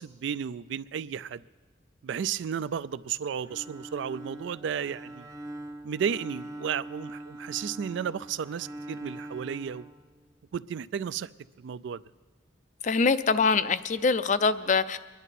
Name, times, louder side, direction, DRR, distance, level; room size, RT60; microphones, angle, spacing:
voice 1, 0.0-1.4 2.0-5.3 5.8-9.9 10.5-11.3 11.6-12.0, right 7 dB, 65° right, 16 dB, 0.3 m, -33 dB
Bowed string instrument, 3.4-10.6, right 1 dB, 15° right, 0.5 m, -43 dB
voice 2, 12.8-15.0, left 4 dB, 40° left, 14 dB, 0.4 m, -24 dB
23.5 x 11.0 x 4.1 m, 1.4 s
head